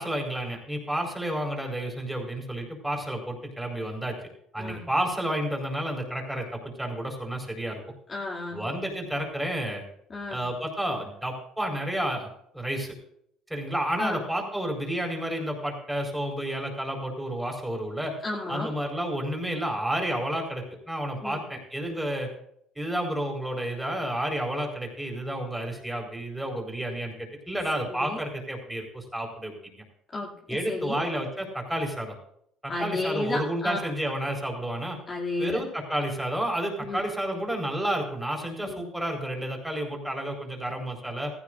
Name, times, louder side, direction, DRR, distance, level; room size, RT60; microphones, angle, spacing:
voice 1, 0.0-4.2 4.5-7.8 8.5-9.8 10.3-12.3 12.5-12.9 13.5-18.1 18.5-22.3 22.8-29.5 30.5-32.2 32.6-35.0 35.4-41.3, right 1 dB, 5° right, 1 dB, 4.5 m, -31 dB
voice 2, 8.1-8.6 10.1-10.4 14.0-14.2 18.2-18.7 21.2-21.4 27.9-28.2 30.1-31.0 32.7-33.8 35.1-35.6 36.8-37.0 38.6-38.8, left 2 dB, 30° left, -4 dB, 2.6 m, -32 dB
16.0 x 14.5 x 2.6 m, 0.71 s
cardioid pair, 105°, 0 cm